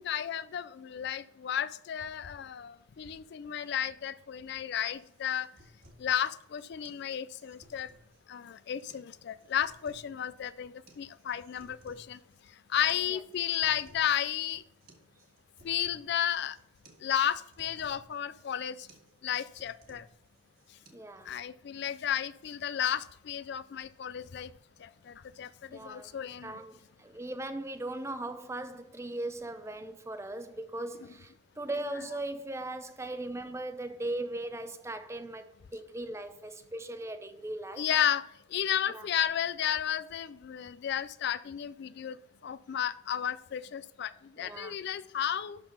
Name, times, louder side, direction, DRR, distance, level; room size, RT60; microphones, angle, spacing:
voice 1, 0.0-5.5 6.0-7.9 8.3-12.2 12.7-14.6 15.6-16.6 17.0-18.9 19.2-20.1 21.3-24.5 24.8-26.6 37.8-42.2 42.4-45.6, left 9 dB, 55° left, 0.3 m, -33 dB
sound 1, 4.9-20.9, right 1 dB, 45° right, 1.6 m, -60 dB
voice 2, 20.9-21.3 25.7-26.1 26.4-37.9 38.9-39.1 44.4-44.8, right 1 dB, 15° right, 0.6 m, -39 dB
12.0 x 4.0 x 5.3 m
head